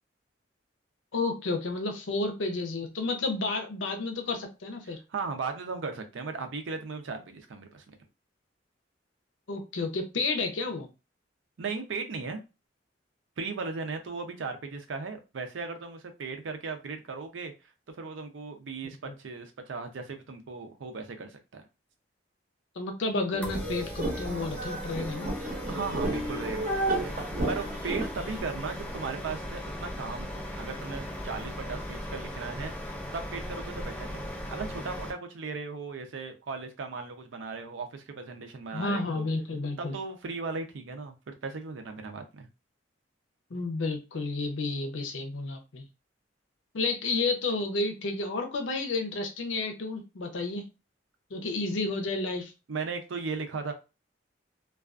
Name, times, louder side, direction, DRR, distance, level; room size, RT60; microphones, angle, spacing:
voice 1, 1.1-5.0 9.5-10.9 19.0-19.1 22.8-25.3 38.7-40.0 43.5-45.8 46.7-50.6 51.3-52.5, left 3 dB, 80° left, 5 dB, 0.6 m, -31 dB
voice 2, 4.8-7.8 11.6-12.4 13.4-17.5 18.0-21.6 25.7-34.2 34.5-39.2 39.8-42.5 52.7-53.7, right 4 dB, 85° right, 6 dB, 0.5 m, -37 dB
sound 1, 23.3-28.4, right 1 dB, 45° right, 0.7 m, -32 dB
sound 2, 23.4-35.1, equal, 5° left, 0.3 m, -38 dB
2.3 x 2.3 x 2.4 m, 0.29 s
head